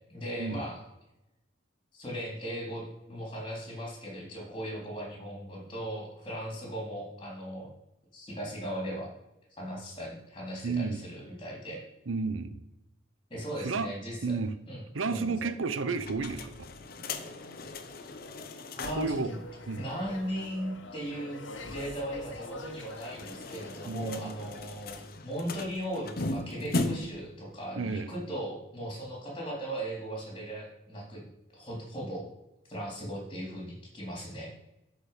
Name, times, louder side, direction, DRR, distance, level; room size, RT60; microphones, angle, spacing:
voice 1, 0.1-0.8 1.9-7.7 8.1-9.1 9.6-11.8 13.3-14.4 14.7-15.5 18.7-19.4 19.8-31.3 31.5-32.3 32.7-34.5, equal, 25° left, -1 dB, 3.5 m, -38 dB
voice 2, 10.6-11.0 12.1-12.6 13.6-13.9 14.2-14.5 14.9-16.5 18.9-19.3 19.7-19.9 23.9-24.3 27.8-28.1, right 4 dB, 85° right, 12 dB, 0.7 m, -31 dB
sound 1, 16.0-19.2 19.5-19.6 19.9-20.0 22.7-27.3, left 2 dB, 50° left, 0.9 m, -37 dB
sound 2, 18.8-25.0, left 2 dB, 75° left, 1.3 m, -46 dB
11.5 x 4.9 x 6.7 m, 0.91 s
head